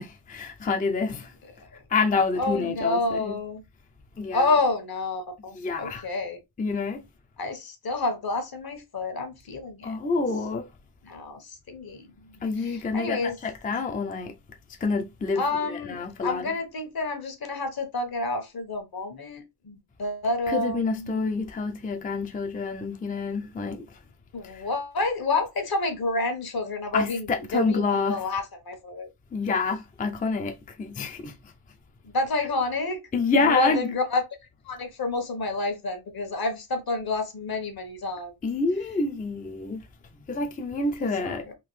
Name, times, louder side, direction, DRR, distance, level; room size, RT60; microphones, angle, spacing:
voice 1, 0.0-1.3 1.9-3.3 4.2-4.5 5.5-6.1 6.6-7.1 9.8-10.7 12.4-14.4 14.8-16.6 20.5-24.0 24.4-24.7 26.9-28.3 29.3-31.5 33.1-33.9 38.4-39.9 40.3-41.5, left 4 dB, 20° left, 0.3 m, -28 dB
voice 2, 2.4-3.6 4.3-6.4 7.4-10.0 11.0-13.4 15.4-21.3 24.3-29.1 32.0-34.2 34.6-38.3 41.0-41.5, left 2 dB, 60° left, 1.1 m, -29 dB
3.7 x 2.6 x 3.0 m
wide cardioid pair, 150°, 42 cm